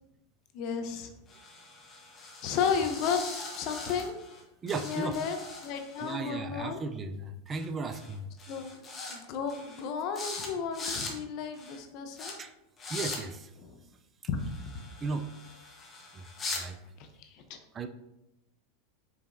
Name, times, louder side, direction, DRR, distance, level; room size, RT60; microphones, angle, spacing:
voice 1, 0.5-1.1 2.4-3.2 3.6-4.2 4.8-5.4 5.6-6.8 8.5-8.7 9.1-12.3 13.6-13.7 14.3-14.4 17.2-17.6, left 6 dB, 55° left, 7 dB, 0.6 m, -33 dB
sound 1, 1.3-4.4 4.7-6.1 7.5-7.7 7.9-8.1 8.4-9.2 9.5-9.8 10.1-10.5 10.7-11.1 11.5-11.8 12.2-12.3 12.8-13.2 14.4-16.6, left 3 dB, 25° left, 1.0 m, -41 dB
voice 2, 4.6-5.1 6.0-8.3 12.4-12.5 12.9-13.5 15.0-15.3 16.1-16.8 17.7-17.9, right 4 dB, 25° right, 7 dB, 0.3 m, -36 dB
4.8 x 3.4 x 2.5 m, 0.88 s
supercardioid pair, 120°, 0 cm